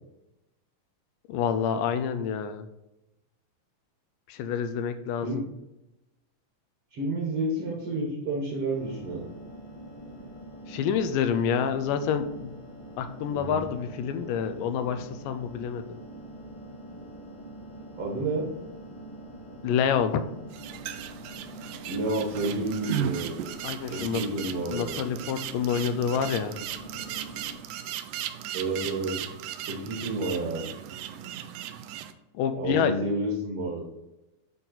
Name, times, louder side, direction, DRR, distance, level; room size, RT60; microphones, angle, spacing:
voice 1, 1.3-2.7 4.3-5.3 10.7-12.5 13.0-16.0 19.6-20.2 23.6-24.2 24.7-26.6 32.3-32.9, left 7 dB, 85° left, 10 dB, 2.2 m, -27 dB
voice 2, 6.9-9.3 13.3-13.6 18.0-18.5 21.9-23.3 23.9-24.9 28.5-29.1 29.7-30.7 32.5-33.8, right 2 dB, 50° right, -2 dB, 2.2 m, -30 dB
sound 1, 8.7-27.6, right 1 dB, 50° left, 1.5 m, -44 dB
sound 2, 20.5-32.1, right 10 dB, 80° right, 2.1 m, -36 dB
11.0 x 4.1 x 3.9 m, 0.93 s
omnidirectional pair, 3.9 m